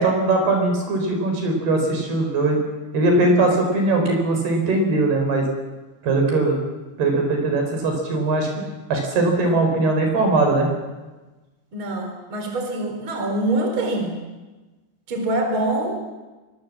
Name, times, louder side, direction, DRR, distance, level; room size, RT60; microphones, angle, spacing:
voice 1, 0.0-2.6 2.9-5.4 6.0-6.6 7.0-8.5 8.9-10.7, right 2 dB, 60° right, 3 dB, 6.5 m, -20 dB
voice 2, 11.7-14.2 15.1-16.0, right 2 dB, 30° right, 3 dB, 4.7 m, -25 dB
24.5 x 23.5 x 7.5 m, 1.2 s
omnidirectional pair, 5.2 m